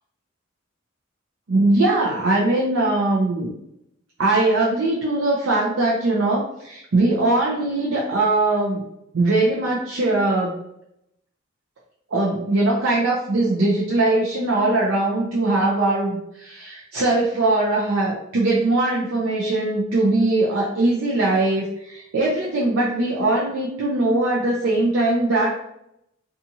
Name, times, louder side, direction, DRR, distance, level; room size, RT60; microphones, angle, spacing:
voice 1, 1.5-3.5 4.2-8.8 9.1-10.6 12.1-25.6, right 2 dB, 70° right, -4 dB, 0.5 m, -21 dB
2.7 x 2.4 x 2.7 m, 0.79 s
head